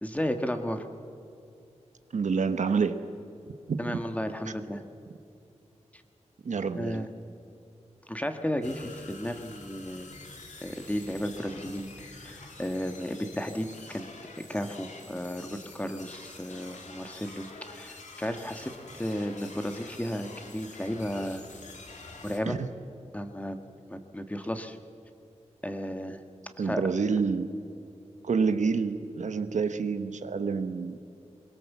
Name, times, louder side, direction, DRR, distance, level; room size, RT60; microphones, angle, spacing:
voice 1, 0.0-0.9 3.8-4.8 5.9-6.0 6.7-7.1 8.1-10.1 10.6-14.1 14.5-21.4 22.2-22.6 23.1-23.6 23.9-24.8 25.6-26.2 26.6-26.8, equal, 10° left, 7 dB, 1.6 m, -34 dB
voice 2, 2.1-3.0 3.7-4.0 6.4-7.1 22.5-22.7 26.6-27.5 28.2-31.0, right 5 dB, 85° right, 10 dB, 1.1 m, -28 dB
sound 1, 8.6-22.4, left 3 dB, 85° left, 2.6 m, -47 dB
22.5 x 21.0 x 7.3 m, 2.7 s
wide cardioid pair, 90°, 12 cm